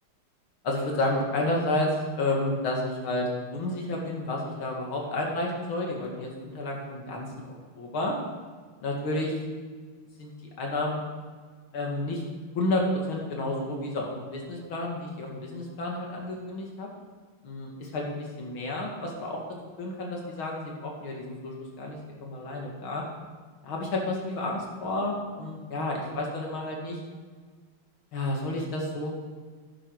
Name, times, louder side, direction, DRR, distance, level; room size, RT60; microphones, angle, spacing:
voice 1, 0.6-7.5 7.8-8.1 8.8-9.4 10.2-11.0 11.7-12.2 12.5-16.9 17.4-19.4 19.8-23.0 23.6-27.0 28.1-29.1, left 2 dB, 70° left, -1 dB, 2.9 m, -31 dB
11.0 x 10.5 x 4.8 m, 1.5 s
omnidirectional pair, 2.3 m